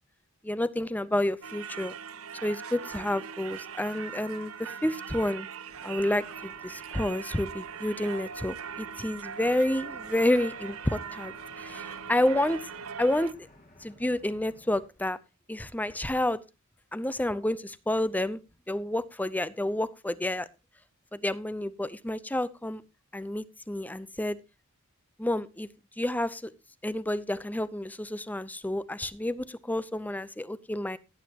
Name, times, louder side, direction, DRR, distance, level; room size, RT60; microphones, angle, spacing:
voice 1, 0.4-1.9 2.4-5.5 5.8-12.7 13.0-13.5 13.8-15.2 15.5-16.4 16.9-18.4 18.7-20.5 21.1-22.8 23.1-24.4 25.2-25.7 26.0-26.5 26.8-31.0, left 1 dB, 10° left, 16 dB, 0.6 m, -29 dB
Singing / Church bell, 1.4-13.3, right 7 dB, 70° right, 0.6 m, -41 dB
sound 1, 5.7-14.9, left 1 dB, 40° left, 2.3 m, -56 dB
17.0 x 9.2 x 2.9 m, 0.26 s
head